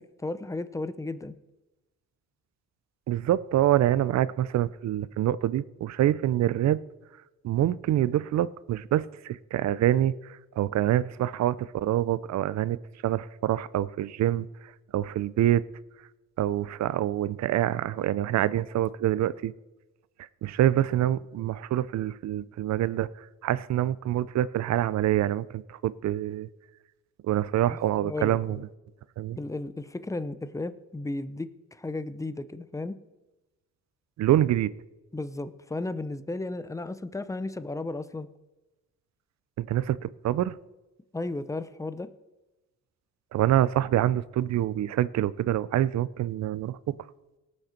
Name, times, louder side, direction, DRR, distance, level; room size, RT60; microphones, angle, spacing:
voice 1, 0.0-1.3 27.7-28.6 29.4-33.0 35.1-38.3 41.1-42.1, left 2 dB, 10° left, 13 dB, 0.7 m, -34 dB
voice 2, 3.1-6.8 7.4-12.8 13.0-14.5 14.9-15.6 16.4-19.5 20.4-26.5 27.2-28.6 29.2-29.4 34.2-34.7 39.6-40.6 43.3-47.0, right 12 dB, 65° right, 19 dB, 0.6 m, -26 dB
18.5 x 6.5 x 4.4 m, 1.1 s
cardioid pair, 90°, 30 cm